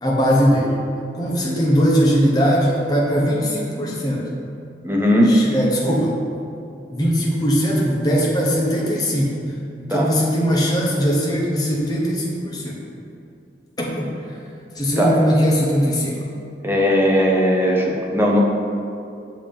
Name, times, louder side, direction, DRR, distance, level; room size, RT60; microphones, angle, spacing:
voice 1, 0.0-0.7 1.2-4.3 5.2-6.2 6.9-9.4 9.8-12.8 13.8-14.1 14.8-16.2, equal, 20° left, -4 dB, 0.9 m, -20 dB
voice 2, 4.8-5.4 9.9-10.1 15.0-15.2 16.6-18.4, equal, 15° right, -2 dB, 0.6 m, -18 dB
7.0 x 3.0 x 5.2 m, 2.5 s
head